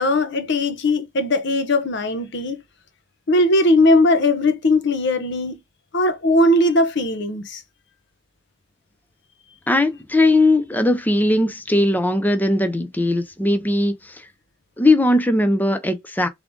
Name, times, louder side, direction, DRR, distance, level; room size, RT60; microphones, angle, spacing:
voice 1, 0.0-2.6 3.3-5.6 5.9-7.6, left 1 dB, 65° left, 0.8 m, -19 dB
voice 2, 9.7-14.3 14.8-16.3, left 1 dB, 10° left, 0.5 m, -19 dB
3.7 x 3.6 x 3.6 m
head